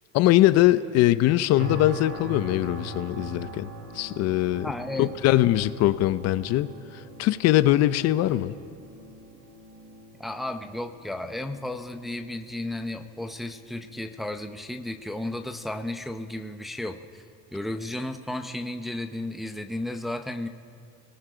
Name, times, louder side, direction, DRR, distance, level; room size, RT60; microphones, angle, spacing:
voice 1, 0.1-3.7 3.9-4.7 5.0-6.7 7.2-8.6, left 15 dB, 55° left, 14 dB, 0.7 m, -21 dB
sound 1, 1.6-16.6 17.1-17.3, right 1 dB, 35° right, 4.1 m, -43 dB
voice 2, 4.6-5.1 10.2-17.2 17.5-20.5, left 1 dB, ahead, 6 dB, 0.6 m, -33 dB
29.5 x 19.0 x 5.0 m, 2.3 s
cardioid pair, 145°, 30 cm